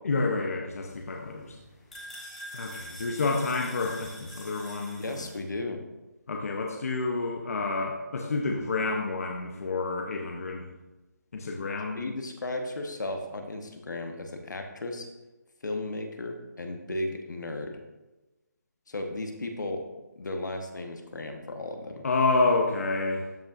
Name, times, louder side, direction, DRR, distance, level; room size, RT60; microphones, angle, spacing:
voice 1, 0.0-1.6 2.5-5.1 6.3-10.7 11.3-12.0 22.0-23.2, left 3 dB, 50° left, 1 dB, 0.8 m, -29 dB
sound 1, 0.8-5.4, equal, ahead, 1.4 m, -45 dB
voice 2, 5.0-5.8 11.9-15.1 15.6-17.8 18.9-19.9 20.2-22.0, left 2 dB, 75° left, 4 dB, 1.2 m, -35 dB
13.0 x 5.2 x 2.5 m, 1.1 s
hypercardioid pair, 170°, 10 cm